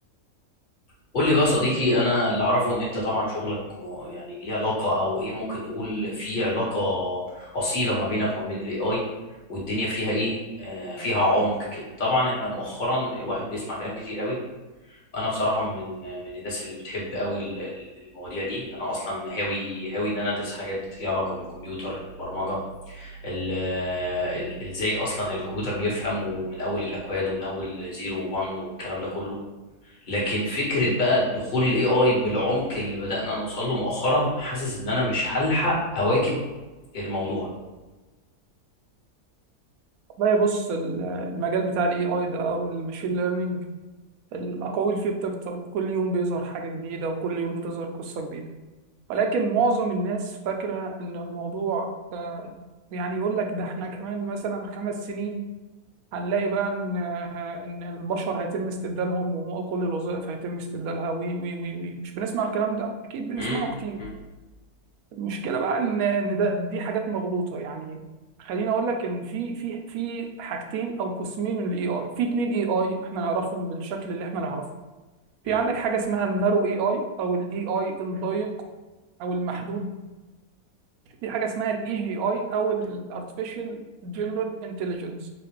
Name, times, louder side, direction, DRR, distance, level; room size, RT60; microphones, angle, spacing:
voice 1, 1.1-9.0 9.5-14.4 15.1-17.9 18.1-22.6 22.9-29.4 30.1-36.4 36.9-37.5 63.4-63.7 64.0-64.1 75.4-75.6, left 1 dB, 35° left, -6 dB, 1.3 m, -26 dB
voice 2, 40.2-43.6 44.3-48.5 49.1-52.5 52.9-55.4 56.1-64.0 65.1-68.0 68.4-74.6 75.4-78.5 79.2-79.9 81.2-85.3, right 4 dB, 75° right, 4 dB, 1.0 m, -28 dB
4.0 x 2.4 x 3.2 m, 1.2 s
omnidirectional pair, 1.6 m